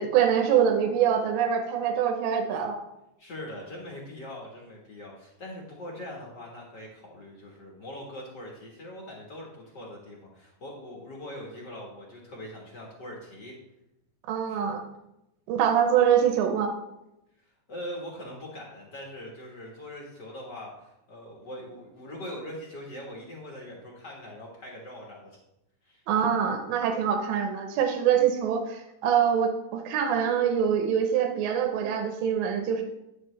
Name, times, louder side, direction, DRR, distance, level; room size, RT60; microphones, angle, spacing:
voice 1, 0.0-2.8 14.3-14.8 15.5-16.7 26.1-32.8, right 8 dB, 80° right, 4 dB, 2.5 m, -24 dB
voice 2, 3.2-13.6 14.5-14.6 17.7-25.3 25.8-26.0, left 1 dB, 60° left, -2 dB, 1.1 m, -42 dB
10.5 x 7.9 x 3.2 m, 0.88 s
omnidirectional pair, 4.3 m